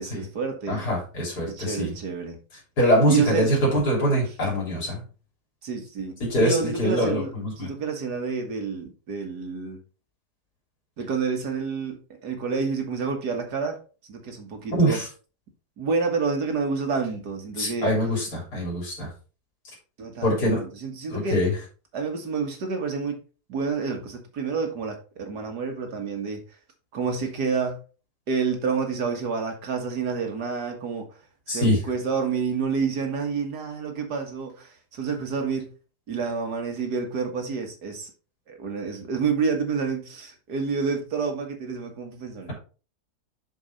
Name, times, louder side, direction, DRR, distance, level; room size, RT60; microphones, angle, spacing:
voice 1, 0.0-0.9 1.4-2.4 3.1-3.6 5.6-7.3 7.6-9.8 11.0-13.8 14.1-15.0 15.8-17.9 20.0-21.4 21.9-23.2 23.5-26.4 26.9-27.8 28.3-31.1 31.5-35.7 36.1-38.1 38.5-42.5, right 5 dB, 90° right, 2.1 m, -29 dB
voice 2, 0.7-1.9 2.8-5.0 6.3-7.7 14.7-15.1 17.6-19.1 20.2-20.6 21.1-21.5 31.5-31.8, equal, 75° left, 3.8 m, -23 dB
6.9 x 6.4 x 4.1 m
omnidirectional pair, 1.7 m